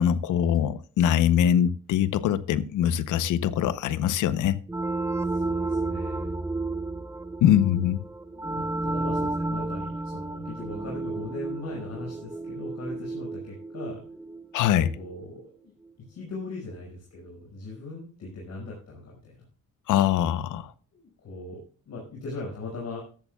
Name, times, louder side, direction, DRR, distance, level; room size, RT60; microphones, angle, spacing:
voice 1, 0.0-4.6 7.4-8.1 14.5-14.9 19.9-20.7, left 10 dB, 80° left, 0.8 m, -23 dB
sound 1, 4.7-15.1, right 2 dB, 10° right, 0.5 m, -32 dB
voice 2, 5.2-6.3 8.3-14.0 14.9-15.7 16.1-19.4 20.9-23.0, left 2 dB, 65° left, 5.5 m, -39 dB
14.5 x 12.5 x 2.3 m
cardioid pair, 90°, 30 cm